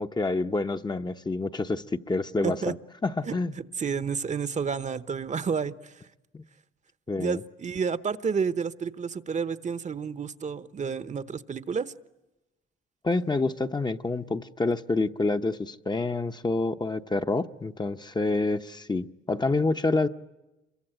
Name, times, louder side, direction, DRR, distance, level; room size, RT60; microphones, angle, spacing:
voice 1, 0.0-2.7 3.0-3.5 6.3-6.4 7.1-7.4 13.0-20.1, left 3 dB, 20° left, 7 dB, 0.8 m, -27 dB
voice 2, 2.4-2.7 3.2-3.3 3.8-6.0 7.2-11.9, right 6 dB, 35° right, 14 dB, 0.9 m, -30 dB
27.5 x 22.5 x 8.9 m, 1.0 s
cardioid pair, 90°, 20 cm